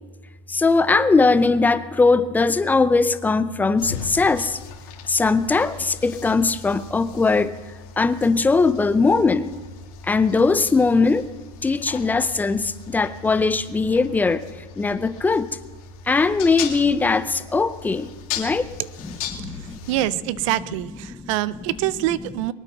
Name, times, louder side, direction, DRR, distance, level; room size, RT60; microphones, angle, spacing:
voice 1, 0.5-4.6 5.1-7.5 8.0-9.5 10.0-11.3 11.6-14.4 14.8-15.5 16.1-18.1 18.4-18.7 19.0-19.8 21.1-21.3, left 4 dB, 10° left, 13 dB, 0.5 m, -20 dB
sound 1, 3.8-20.0, left 9 dB, 70° left, 3.1 m, -39 dB
voice 2, 19.9-22.5, right 15 dB, 60° right, 19 dB, 0.5 m, -25 dB
22.5 x 9.1 x 5.9 m, 1.4 s
supercardioid pair, 145°, 19 cm